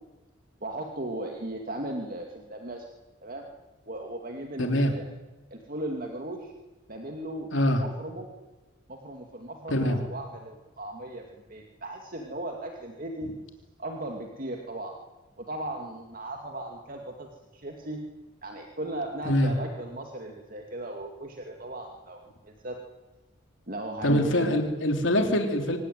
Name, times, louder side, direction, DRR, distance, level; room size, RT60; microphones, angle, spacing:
voice 1, 0.6-2.9 3.2-3.4 3.9-5.0 5.5-6.5 6.9-8.3 8.9-13.4 13.8-15.0 15.4-18.0 18.4-22.8 23.7-24.6, right 1 dB, 45° right, 2 dB, 2.5 m, -37 dB
voice 2, 4.6-4.9 7.5-7.8 9.7-10.0 19.3-19.5 24.0-25.8, equal, 75° left, 4 dB, 3.4 m, -24 dB
25.5 x 18.0 x 9.5 m, 1.2 s
head